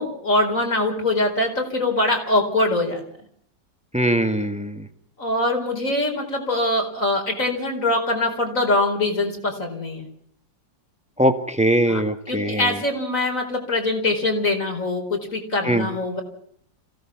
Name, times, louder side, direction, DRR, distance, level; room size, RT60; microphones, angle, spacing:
voice 1, 0.0-3.0 5.2-10.1 11.9-12.0 12.3-16.2, left 2 dB, 40° left, 3 dB, 5.1 m, -23 dB
voice 2, 3.9-4.8 11.2-12.7 15.6-15.9, right 1 dB, 5° right, 7 dB, 1.5 m, -21 dB
27.5 x 17.0 x 6.0 m, 0.64 s
omnidirectional pair, 2.0 m